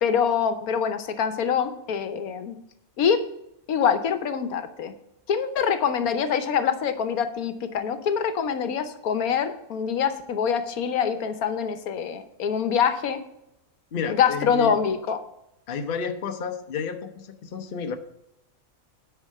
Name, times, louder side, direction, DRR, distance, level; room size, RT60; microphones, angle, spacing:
voice 1, 0.0-2.6 3.0-3.2 3.7-4.9 5.3-13.2 14.1-15.2, left 7 dB, 80° left, 10 dB, 1.3 m, -25 dB
voice 2, 13.9-14.8 15.7-18.0, left 6 dB, 45° left, 7 dB, 0.9 m, -31 dB
9.7 x 4.6 x 7.5 m, 0.81 s
omnidirectional pair, 1.5 m